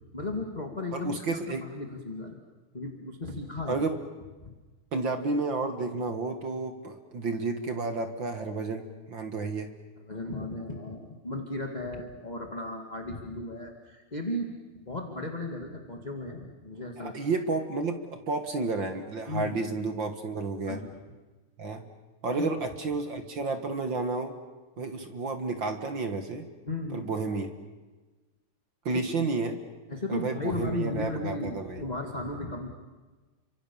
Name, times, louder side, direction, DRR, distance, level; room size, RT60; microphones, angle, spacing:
voice 1, 0.1-2.4 2.7-3.8 4.4-4.5 10.1-17.1 19.3-19.6 20.7-21.0 22.3-22.5 24.8-24.9 26.6-27.1 28.9-29.0 29.9-32.7, left 2 dB, 15° left, 3 dB, 1.8 m, -35 dB
voice 2, 0.9-1.6 3.7-3.9 4.9-9.7 17.0-20.8 21.6-21.8 22.2-24.4 24.8-26.5 26.9-27.5 28.9-29.6 30.1-31.9, right 3 dB, 45° right, 7 dB, 1.9 m, -31 dB
30.0 x 25.0 x 7.1 m, 1.2 s
omnidirectional pair, 3.6 m